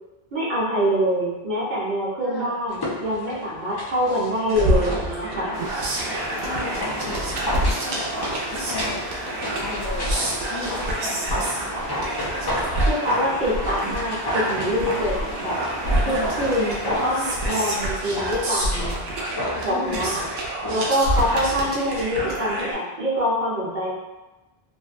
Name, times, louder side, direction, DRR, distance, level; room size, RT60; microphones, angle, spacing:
voice 1, 0.3-5.5 12.9-15.6 16.0-19.0 19.6-20.3 20.7-24.0, equal, 50° right, -8 dB, 0.9 m, -25 dB
voice 2, 2.2-2.6 4.5-4.6 6.4-12.1 16.0-16.5 19.7-20.3, left 2 dB, 70° left, -3 dB, 0.8 m, -35 dB
sound 1, 2.7-21.5 21.8-21.9, left 1 dB, 40° left, 0.3 m, -32 dB
sound 2, 4.5-22.7, right 1 dB, 80° right, 0.8 m, -28 dB
sound 3, 5.5-17.8, right 1 dB, 30° right, 0.5 m, -35 dB
2.6 x 2.0 x 2.4 m, 1.0 s
omnidirectional pair, 1.0 m